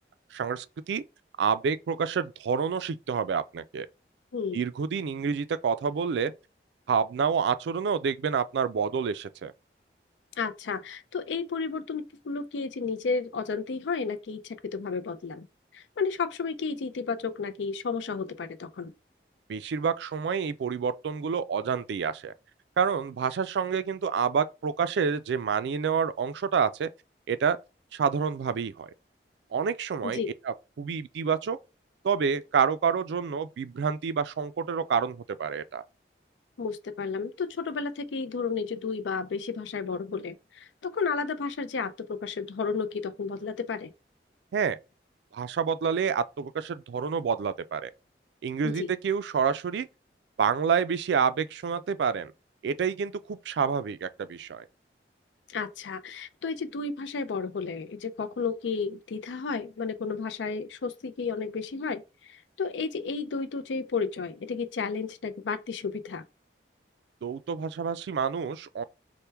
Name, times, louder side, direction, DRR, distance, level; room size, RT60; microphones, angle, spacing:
voice 1, 0.3-1.0 1.4-3.9 4.5-6.3 6.9-9.5 19.5-22.3 22.8-26.9 27.3-27.6 27.9-28.9 29.5-30.2 30.5-31.6 32.0-35.8 44.5-44.8 45.3-47.9 48.4-49.9 50.4-52.3 52.6-54.7 67.2-68.8, right 6 dB, 75° right, 0.3 m, -28 dB
voice 2, 10.4-15.5 15.7-18.9 30.0-30.3 36.6-43.9 48.6-48.9 55.5-66.2, left 5 dB, 85° left, 0.4 m, -32 dB
4.4 x 2.1 x 3.3 m
head